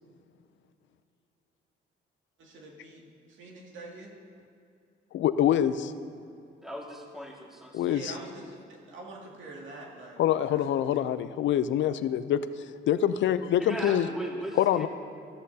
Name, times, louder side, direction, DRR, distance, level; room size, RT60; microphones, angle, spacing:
voice 1, 2.4-3.0 3.3-4.1 7.9-10.2 10.5-10.8 11.1-11.2, right 2 dB, 75° right, -2 dB, 2.3 m, -45 dB
voice 2, 5.1-5.9 7.7-8.1 10.2-12.4 12.9-14.1 14.6-14.9, left 10 dB, 70° left, 13 dB, 0.6 m, -25 dB
voice 3, 6.6-8.0 13.6-14.9, equal, ahead, -1 dB, 2.0 m, -38 dB
14.0 x 13.0 x 2.8 m, 2.5 s
cardioid pair, 90°, 20 cm